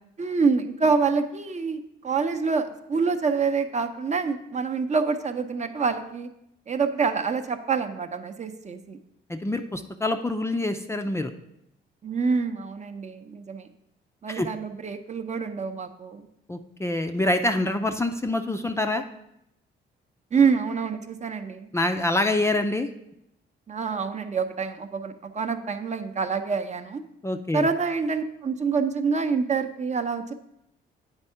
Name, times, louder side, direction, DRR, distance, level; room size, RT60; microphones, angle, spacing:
voice 1, 0.2-6.3 6.7-9.0 12.0-13.7 14.2-16.3 20.3-21.7 23.7-27.0 27.5-30.3, right 5 dB, 35° right, 7 dB, 0.7 m, -26 dB
voice 2, 9.3-11.3 14.3-14.5 16.5-19.0 21.7-22.9 27.2-27.7, left 2 dB, 15° left, 6 dB, 0.5 m, -26 dB
8.9 x 3.5 x 5.6 m, 0.80 s
cardioid pair, 90°, 20 cm